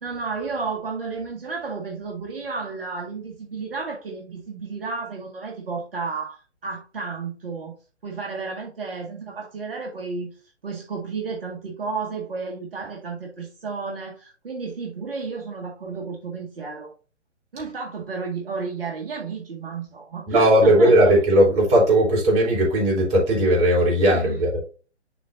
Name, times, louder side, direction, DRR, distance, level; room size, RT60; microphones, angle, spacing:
voice 1, 0.0-7.7 8.0-10.4 10.6-16.9 17.5-21.2 24.1-24.4, right 4 dB, 50° right, -1 dB, 1.9 m, -32 dB
voice 2, 20.3-24.6, right 1 dB, 20° right, -2 dB, 3.3 m, -17 dB
11.5 x 3.8 x 2.6 m, 0.35 s
figure-of-eight pair, 130°, 36 cm